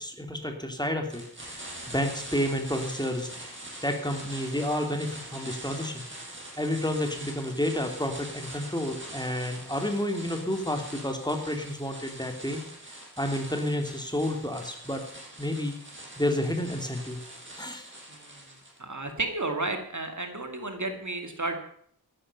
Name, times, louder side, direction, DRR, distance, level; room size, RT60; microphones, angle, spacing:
voice 1, 0.0-3.5 3.8-6.0 6.6-12.6 13.2-15.0 15.4-15.7 16.2-17.2 17.6-17.9, left 1 dB, 10° left, 4 dB, 2.7 m, -30 dB
sound 1, 1.1-18.8, right 1 dB, 30° right, 5.5 m, -43 dB
voice 2, 18.1-18.4 18.8-21.6, right 2 dB, 50° right, 6 dB, 2.1 m, -32 dB
14.0 x 11.0 x 5.5 m, 0.64 s
wide cardioid pair, 55°, 37 cm